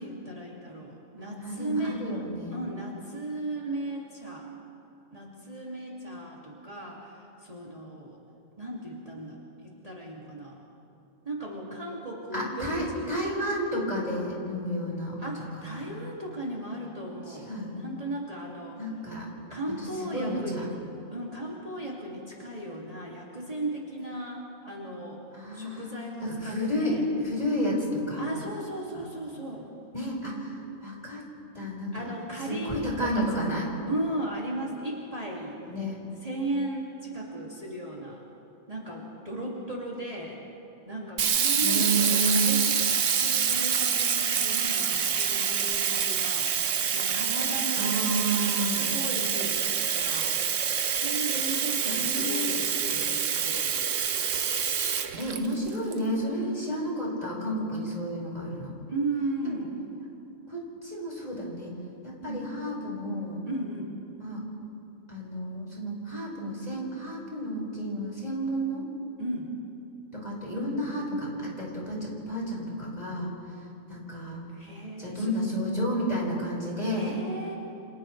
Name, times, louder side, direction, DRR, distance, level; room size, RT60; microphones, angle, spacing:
voice 1, 0.0-2.0 2.5-4.5 5.1-8.2 8.6-10.6 11.2-13.0 15.2-18.8 19.5-20.7 21.1-25.2 25.5-27.1 28.2-29.7 31.9-33.3 33.9-35.6 36.2-38.2 38.7-40.4 40.9-42.8 43.2-46.5 46.9-48.0 48.6-50.3 50.9-53.9 58.9-59.7 62.3-62.5 63.5-64.0 69.2-69.5 74.5-75.4 76.9-77.5, right 1 dB, 25° right, -5 dB, 2.6 m, -36 dB
voice 2, 1.4-2.6 12.3-15.9 17.3-17.8 18.8-19.3 20.0-20.7 25.3-25.9 26.2-28.3 28.9-29.0 29.9-31.3 31.5-32.1 32.5-33.7 35.7-36.0 41.6-42.6 47.7-48.9 51.8-52.6 55.1-58.7 59.4-59.6 60.5-61.7 62.0-63.4 64.2-64.4 65.1-68.9 70.1-73.3 73.9-74.4 75.0-77.2, equal, 30° left, -4 dB, 5.4 m, -31 dB
Sink (filling or washing), 41.2-55.9, right 7 dB, 65° right, 1.2 m, -26 dB
29.5 x 27.5 x 3.3 m, 2.8 s
omnidirectional pair, 1.4 m